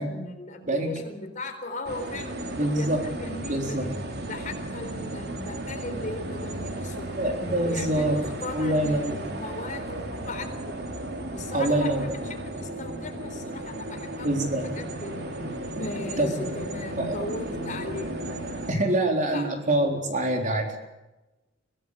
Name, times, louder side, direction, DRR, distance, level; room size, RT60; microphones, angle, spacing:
voice 1, 0.0-3.9 4.3-10.8 11.3-12.1 12.4-15.3 15.8-18.1 18.9-19.7, left 2 dB, 45° left, 6 dB, 4.0 m, -38 dB
voice 2, 0.7-1.0 2.6-3.0 3.4-4.0 7.2-8.2 8.5-9.2 11.5-12.1 14.2-14.7 16.2-16.3 17.0-17.2 18.7-20.8, right 1 dB, 45° right, 3 dB, 4.0 m, -25 dB
sound 1, 1.8-18.7, right 1 dB, 60° right, 3.0 m, -35 dB
23.5 x 17.5 x 8.3 m, 1.0 s
head